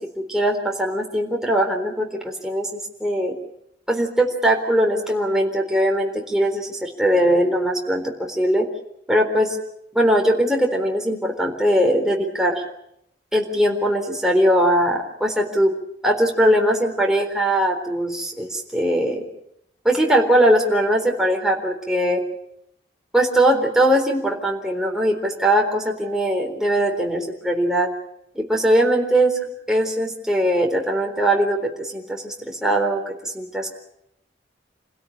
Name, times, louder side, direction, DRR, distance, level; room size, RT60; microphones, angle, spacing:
voice 1, 0.0-2.7 3.0-3.4 3.9-8.7 9.1-9.6 9.9-12.6 13.3-15.7 16.0-19.3 19.8-22.2 23.1-27.9 28.4-29.4 29.7-33.7, right 1 dB, 5° right, 1 dB, 3.9 m, -20 dB
28.0 x 17.0 x 8.8 m, 0.77 s
head